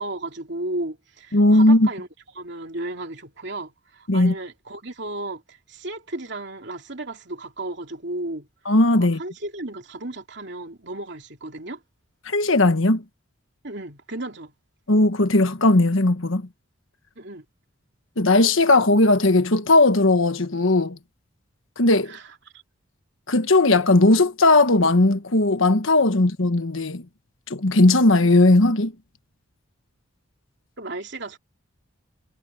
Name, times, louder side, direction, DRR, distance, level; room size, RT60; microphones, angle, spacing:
voice 1, 0.0-2.1 2.3-8.5 9.0-11.8 13.6-14.5 17.2-17.4 22.1-22.6 26.1-26.2 30.8-31.4, right 2 dB, 55° right, 3.1 m, -34 dB
voice 2, 1.3-1.9 4.1-4.3 8.7-9.2 12.3-13.0 14.9-16.5 18.2-21.0 21.8-22.2 23.3-27.0 27.5-28.9, left 2 dB, 65° left, 1.4 m, -17 dB
head